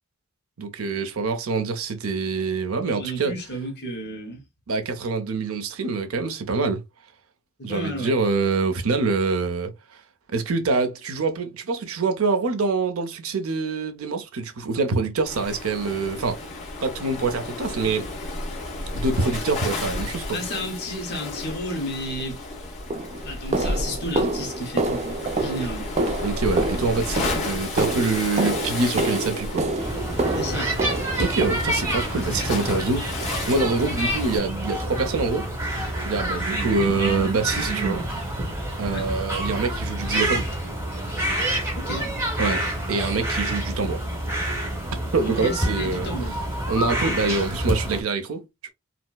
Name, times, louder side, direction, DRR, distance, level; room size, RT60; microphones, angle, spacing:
voice 1, 0.6-3.3 4.7-6.8 7.6-10.0 10.3-16.4 16.8-18.1 18.9-20.4 26.2-29.6 31.2-35.5 36.0-38.0 38.8-40.5 42.4-44.0 45.1-46.1 46.7-48.7, right 4 dB, 75° right, 0.6 m, -25 dB
voice 2, 2.7-4.4 7.6-8.1 20.3-22.4 23.2-25.9 30.3-30.7 36.7-37.0 38.9-39.1 41.8-42.1 45.2-46.4, equal, 50° left, 1.1 m, -32 dB
Waves surf, 15.2-34.4, left 2 dB, 30° left, 1.4 m, -33 dB
sound 1, 22.2-22.4 22.9-32.1 32.6-32.9 33.2-33.4 33.8-34.0 34.4-34.5 35.0-35.1, right 2 dB, 30° right, 0.3 m, -28 dB
sound 2, 29.8-48.0, right 1 dB, 10° right, 1.0 m, -28 dB
4.2 x 2.0 x 2.2 m
head